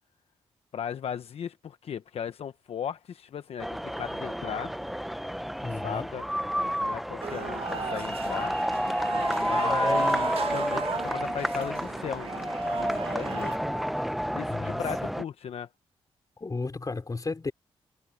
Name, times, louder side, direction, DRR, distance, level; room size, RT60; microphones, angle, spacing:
voice 1, 0.7-4.7 5.8-6.2 6.8-8.5 9.4-12.5 12.8-13.8 14.3-15.7, left 8 dB, 70° left, 1.0 m, -36 dB
sound 1, 3.6-15.2, equal, ahead, 1.0 m, -30 dB
voice 2, 5.6-6.1 14.5-15.1 16.4-17.5, left 3 dB, 35° left, 3.9 m, -34 dB
sound 2, 7.2-13.6, right 7 dB, 60° right, 1.9 m, -37 dB
cardioid pair, 60°, 11 cm